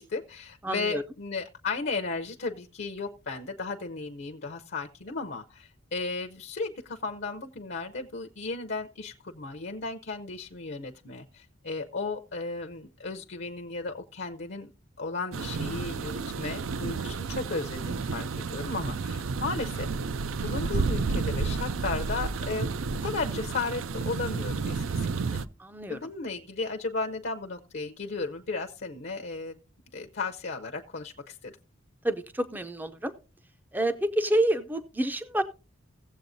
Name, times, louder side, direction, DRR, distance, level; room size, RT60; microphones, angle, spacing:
voice 1, 0.0-14.7 15.0-19.9 20.4-22.7 23.0-25.4 25.9-29.6 29.9-31.5, left 3 dB, 55° left, 6 dB, 0.6 m, -35 dB
voice 2, 0.6-1.0 25.6-26.0 32.0-33.1 33.7-35.4, right 1 dB, 10° right, 10 dB, 0.4 m, -28 dB
sound 1, 15.3-25.5, right 4 dB, 75° right, 0.5 m, -31 dB
17.0 x 7.6 x 2.6 m, 0.32 s
head